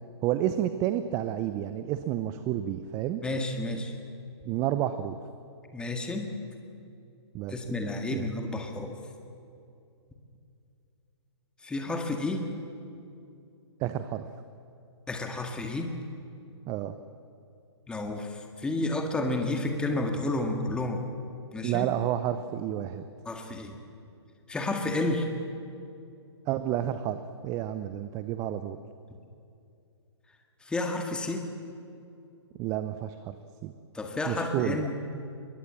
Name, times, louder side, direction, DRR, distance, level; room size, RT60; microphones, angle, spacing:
voice 1, 0.2-3.2 4.5-5.2 7.3-7.5 8.1-8.3 13.8-14.2 16.7-17.0 21.6-23.1 26.5-28.8 32.6-33.4 33.6-33.7 34.3-34.9, right 12 dB, 20° right, 11 dB, 0.7 m, -30 dB
voice 2, 3.2-3.9 5.7-6.3 7.5-8.9 11.6-12.5 15.1-15.9 17.9-21.0 21.5-21.9 23.3-23.7 24.5-25.3 30.6-31.5 33.9-35.0, left 2 dB, 5° left, 3 dB, 1.8 m, -31 dB
22.5 x 21.0 x 7.5 m, 2.6 s
figure-of-eight pair, 130°, 15 cm